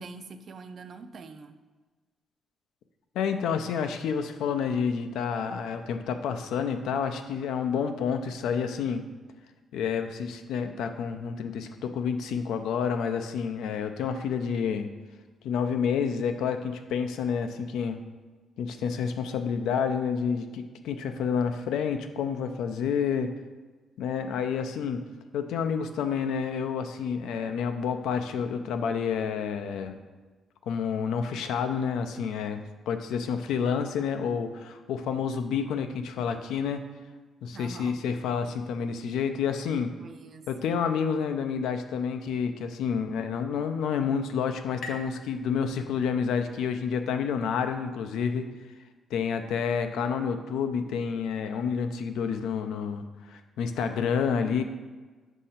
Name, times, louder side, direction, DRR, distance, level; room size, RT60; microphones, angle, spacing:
voice 1, 0.0-1.6 37.5-38.0 40.0-40.7, right 4 dB, 40° right, 10 dB, 0.3 m, -44 dB
voice 2, 3.1-9.0 9.7-14.9 15.4-18.0 18.6-23.3 24.0-25.0 25.3-30.0 30.6-32.6 32.9-36.8 37.4-39.9 40.5-48.5 49.1-54.6, left 6 dB, 90° left, 7 dB, 0.5 m, -29 dB
sound 1, 43.4-46.7, left 3 dB, 70° left, 0.8 m, -47 dB
6.4 x 2.7 x 5.7 m, 1.3 s
cardioid pair, 165°, 0 cm